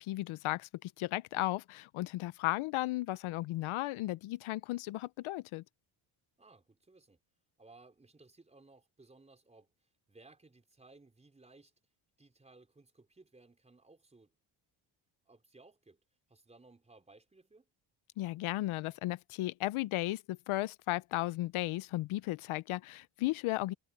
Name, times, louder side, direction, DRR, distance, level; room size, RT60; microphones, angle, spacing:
voice 1, 0.0-5.6 18.2-23.7, left 17 dB, 80° left, 0.6 m, -35 dB
voice 2, 6.4-7.2 7.6-9.7 10.1-11.7 12.2-14.4 15.3-16.0 16.3-17.7, right 3 dB, 15° right, 4.5 m, -60 dB
cardioid pair, 170°, 49 cm